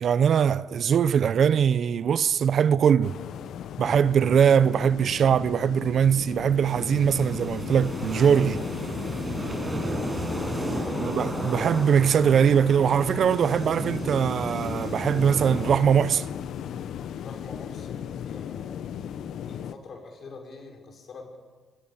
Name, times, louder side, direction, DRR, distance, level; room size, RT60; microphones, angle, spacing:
voice 1, 0.0-3.2 3.8-8.6 11.0-16.3, right 8 dB, 60° right, 0.7 m, -21 dB
sound 1, 3.0-19.8, left 9 dB, 75° left, 0.9 m, -36 dB
sound 2, 6.6-15.8, right 1 dB, 15° right, 6.3 m, -34 dB
voice 2, 10.0-11.2 17.2-18.9 19.4-21.4, left 3 dB, 55° left, 5.8 m, -45 dB
25.0 x 19.0 x 7.2 m
cardioid pair, 90°, 0 cm